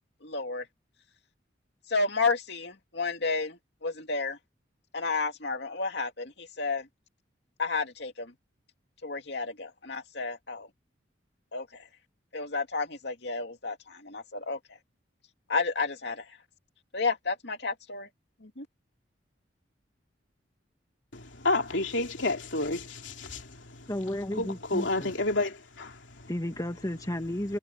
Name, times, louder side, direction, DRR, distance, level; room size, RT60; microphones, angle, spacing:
voice 1, 0.2-0.6 1.9-4.4 4.9-6.8 7.6-8.3 9.0-10.7 11.5-11.7 12.3-14.6 15.5-16.2 16.9-18.1 18.4-18.6, left 4 dB, 60° left, 2.8 m, -31 dB
voice 2, 21.1-23.9 24.3-26.3, left 2 dB, 80° left, 2.9 m, -30 dB
voice 3, 23.9-25.1 26.3-27.6, left 1 dB, 20° left, 1.9 m, -33 dB
head